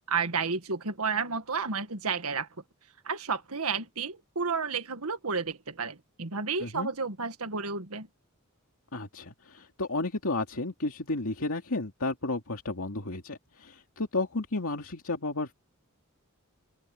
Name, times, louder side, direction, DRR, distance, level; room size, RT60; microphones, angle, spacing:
voice 1, 0.0-2.5 3.1-8.1, right 5 dB, 85° right, 1.8 m, -31 dB
voice 2, 8.9-15.5, left 2 dB, 70° left, 2.7 m, -32 dB
open air
head